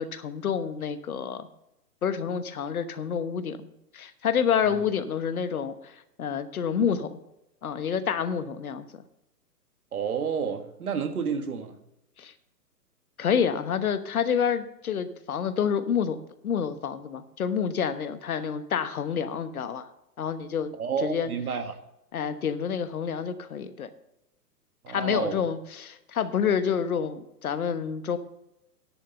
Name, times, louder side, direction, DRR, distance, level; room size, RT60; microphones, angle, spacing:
voice 1, 0.0-1.5 2.0-5.9 6.2-7.2 7.6-8.9 12.2-12.3 13.2-16.2 16.4-19.9 20.2-20.7 21.0-21.3 22.1-23.9 24.9-28.2, left 7 dB, 60° left, 11 dB, 1.2 m, -28 dB
voice 2, 9.9-11.8 20.8-21.8 24.8-25.4, right 6 dB, 65° right, 7 dB, 1.6 m, -30 dB
10.5 x 6.9 x 6.8 m, 0.85 s
figure-of-eight pair, 120°, 47 cm